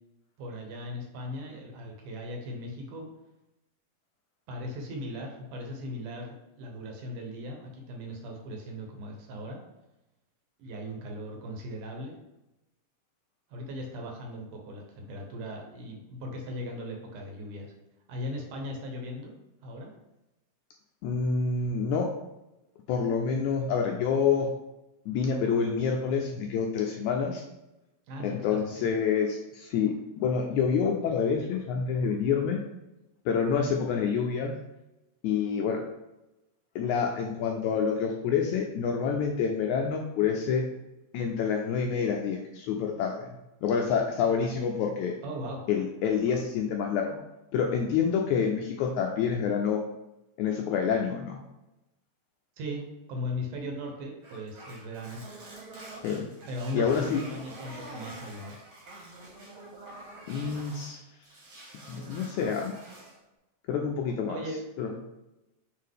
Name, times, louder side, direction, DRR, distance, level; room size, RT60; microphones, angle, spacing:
voice 1, 0.4-3.1 4.5-9.6 10.6-12.1 13.5-17.7 18.1-19.3 19.6-19.9 28.1-28.9 45.2-45.7 52.6-55.2 56.5-58.5 64.3-64.6, equal, 70° right, 1 dB, 2.5 m, -38 dB
voice 2, 21.0-22.1 22.9-24.5 25.1-27.4 28.2-32.6 33.3-34.5 35.2-35.8 36.8-40.6 41.1-43.3 43.6-45.2 45.7-47.2 47.5-49.8 50.4-51.4 56.0-56.3 56.7-57.2 60.3-61.0 61.9-62.7 63.7-64.4 64.8-65.0, left 6 dB, 80° left, 2 dB, 1.7 m, -27 dB
sound 1, 54.2-61.0 61.2-63.2, right 2 dB, 45° right, 2.0 m, -46 dB
7.5 x 3.7 x 3.6 m, 0.95 s
omnidirectional pair, 3.8 m